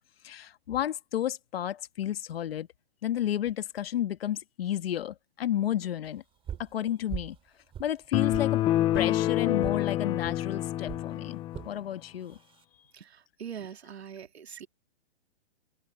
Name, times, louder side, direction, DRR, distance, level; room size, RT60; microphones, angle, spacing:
voice 1, 0.2-2.7 3.0-6.2 6.6-7.4 7.8-8.6 8.9-12.4, left 11 dB, 70° left, 1.6 m, -32 dB
sound 1, 6.5-6.7 7.1-7.4 7.7-8.5 8.9-9.1 9.6-9.8 10.2-10.4 10.9-11.1 11.5-11.7 12.3-12.6, right 9 dB, 15° right, 3.9 m, -39 dB
sound 2, 8.1-11.7, left 13 dB, 15° left, 0.6 m, -27 dB
voice 2, 12.9-14.7, right 8 dB, 90° right, 2.8 m, -42 dB
open air
hypercardioid pair, 145°, 31 cm